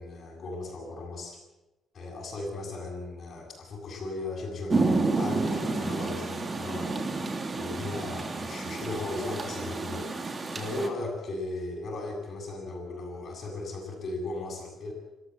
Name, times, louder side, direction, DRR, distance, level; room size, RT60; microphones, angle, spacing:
voice 1, 0.0-1.4 1.9-6.9 7.6-10.1 10.5-14.9, left 2 dB, 50° left, -5 dB, 7.8 m, -36 dB
Rain, 4.7-10.9, right 3 dB, 30° right, 3.0 m, -30 dB
27.0 x 14.5 x 8.6 m, 1.0 s
cardioid pair, 90°, 0 cm